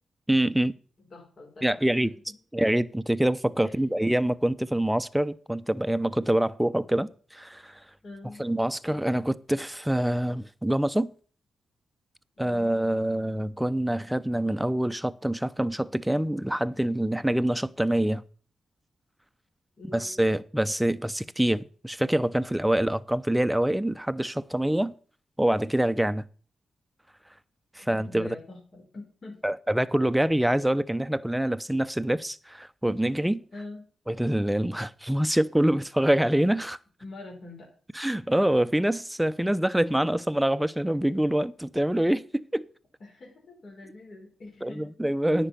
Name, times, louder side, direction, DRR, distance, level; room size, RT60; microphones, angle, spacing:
voice 1, 0.3-0.7 1.6-2.1 2.5-7.8 8.4-11.1 12.4-18.2 19.9-24.9 25.4-26.2 27.8-28.3 29.4-33.4 34.1-36.8 37.9-42.7 44.6-45.5, right 1 dB, 5° right, 0.7 m, -25 dB
voice 2, 1.0-1.8 2.3-2.4 3.6-4.1 8.0-8.4 12.4-12.7 19.8-20.2 27.8-29.4 33.5-33.8 37.0-37.7 43.0-44.9, left 2 dB, 60° left, 4.2 m, -44 dB
9.9 x 5.4 x 8.3 m
cardioid pair, 60°, 0 cm